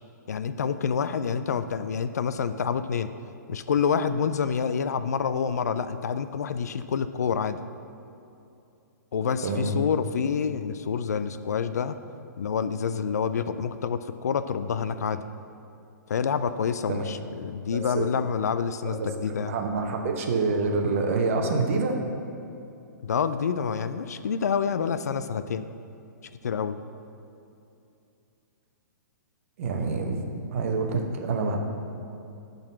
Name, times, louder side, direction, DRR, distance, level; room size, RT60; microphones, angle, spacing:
voice 1, 0.3-3.1 3.5-7.6 9.1-12.0 12.4-15.2 16.1-19.5 23.0-25.7 26.4-26.8, left 6 dB, 55° left, 11 dB, 0.4 m, -27 dB
voice 2, 9.4-9.8 16.9-17.1 17.7-18.1 19.0-22.0 29.6-30.2 30.5-31.6, right 3 dB, 45° right, 3 dB, 1.0 m, -27 dB
10.5 x 3.9 x 7.2 m, 2.7 s
figure-of-eight pair, 120°, 10 cm